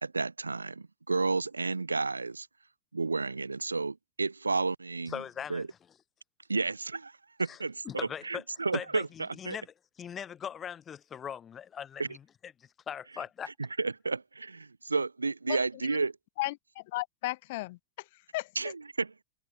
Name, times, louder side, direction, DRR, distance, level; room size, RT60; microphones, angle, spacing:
voice 1, 0.0-2.5 2.9-5.2 5.5-5.7 6.5-9.6 12.0-12.1 13.8-16.1 18.6-19.2, right 3 dB, 80° right, 0.6 m, -32 dB
voice 2, 5.1-5.6 7.5-7.6 7.8-8.4 8.7-13.5, left 8 dB, 25° left, 0.9 m, -40 dB
voice 3, 16.4-18.5, left 20 dB, 50° left, 1.0 m, -35 dB
figure-of-eight pair, 90°, 0 cm